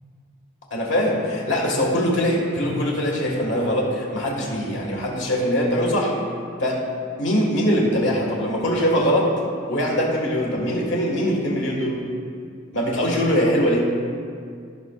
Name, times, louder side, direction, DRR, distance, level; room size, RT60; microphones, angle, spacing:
voice 1, 0.7-6.1 6.6-6.9 7.2-9.4 9.7-12.0 12.7-13.9, equal, 60° left, -2 dB, 1.6 m, -22 dB
15.0 x 5.8 x 2.4 m, 2.2 s
head